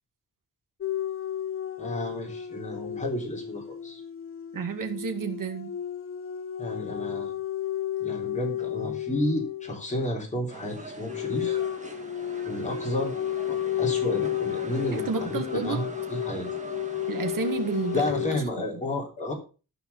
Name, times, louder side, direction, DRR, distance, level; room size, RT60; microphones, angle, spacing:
sound 1, 0.8-9.9 11.0-18.4, left 11 dB, 40° left, 0.7 m, -32 dB
voice 1, 1.8-4.0 6.6-7.3 8.0-11.6 12.4-13.2 13.5-16.5 17.9-19.3, left 1 dB, 20° left, 0 dB, 3.5 m, -31 dB
voice 2, 4.5-5.7 14.9-15.8 17.1-18.0, right 5 dB, 65° right, 5 dB, 1.9 m, -30 dB
sound 2, 10.5-18.1, right 2 dB, 20° right, 1.7 m, -43 dB
12.5 x 4.8 x 6.9 m, 0.34 s
wide cardioid pair, 155°, 35 cm